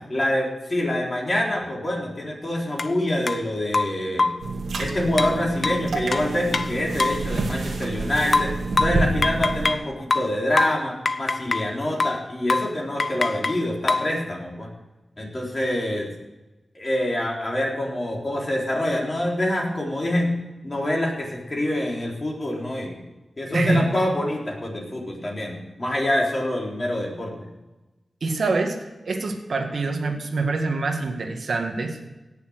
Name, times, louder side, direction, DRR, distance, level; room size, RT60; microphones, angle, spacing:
voice 1, 0.1-4.3 4.8-8.5 8.8-14.7 15.2-16.1 16.7-20.3 20.6-23.0 23.4-27.3, left 1 dB, 35° left, -2 dB, 4.1 m, -26 dB
sound 1, 2.8-2.9 3.3-3.4 3.7-4.5 5.2-7.3 8.3-9.9 10.1-11.7 12.0-12.2 12.5-12.7 13.0-14.1, left 3 dB, 55° left, 0.7 m, -24 dB
sound 2, 4.4-9.7, right 3 dB, 90° right, 2.1 m, -28 dB
voice 2, 23.5-23.9 28.2-28.8 29.0-32.0, right 3 dB, 75° right, 3 dB, 1.8 m, -25 dB
17.5 x 7.1 x 6.4 m, 1.1 s
wide cardioid pair, 90°, 0 cm